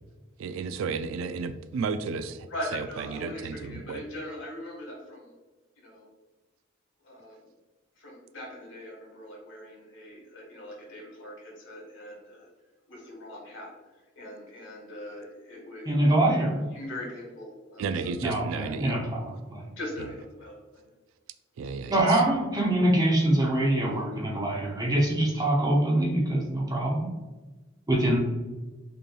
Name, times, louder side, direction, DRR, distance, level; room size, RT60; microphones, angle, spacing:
voice 1, 0.4-4.0 17.8-18.9 20.0-20.1 21.6-22.2, right 5 dB, 80° right, 10 dB, 0.3 m, -33 dB
voice 2, 2.5-5.3 5.8-6.1 7.0-7.4 8.0-12.5 12.9-13.7 14.1-16.0 16.7-18.1 19.8-20.8, left 1 dB, 70° left, -3 dB, 1.4 m, -41 dB
voice 3, 15.9-16.6 18.2-19.7 21.9-27.1 27.9-28.2, right 1 dB, 20° right, -2 dB, 0.6 m, -24 dB
5.1 x 3.1 x 2.3 m, 1.2 s
head